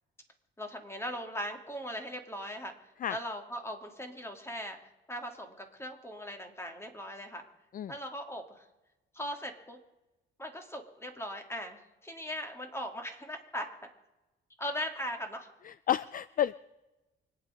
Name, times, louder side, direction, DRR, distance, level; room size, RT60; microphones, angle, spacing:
voice 1, 0.6-2.7 3.1-7.4 7.9-8.7 9.1-9.8 10.4-13.9 14.6-15.5, equal, 15° left, 4 dB, 2.8 m, -39 dB
voice 2, 15.6-16.6, left 10 dB, 45° left, 18 dB, 0.4 m, -31 dB
25.5 x 9.3 x 5.2 m, 1.0 s
cardioid pair, 90°, 20 cm